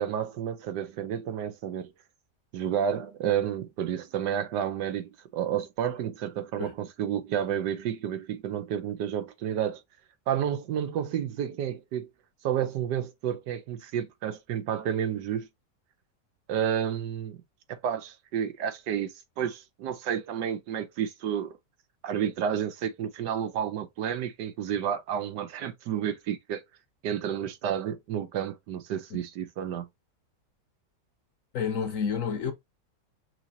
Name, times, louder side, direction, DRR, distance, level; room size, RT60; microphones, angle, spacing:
voice 1, 0.0-1.9 2.5-9.8 10.3-12.1 12.4-15.5 16.5-17.4 17.7-21.6 22.0-26.6 27.0-29.9, right 9 dB, 85° right, 1.4 m, -30 dB
voice 2, 31.5-32.5, left 6 dB, 55° left, 1.1 m, -29 dB
6.1 x 2.7 x 2.7 m
omnidirectional pair, 1.8 m